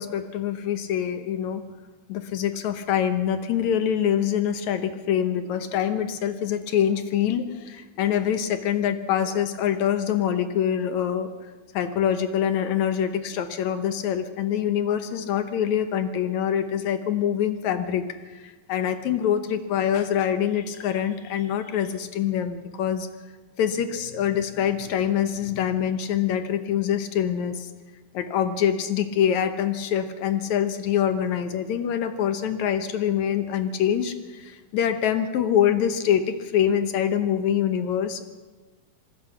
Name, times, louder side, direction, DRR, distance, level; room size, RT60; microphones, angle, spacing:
voice 1, 0.0-1.6 2.1-11.3 11.7-23.1 23.6-27.7 28.1-38.2, left 9 dB, 70° left, 9 dB, 1.8 m, -25 dB
26.5 x 19.5 x 5.9 m, 1.2 s
omnidirectional pair, 4.5 m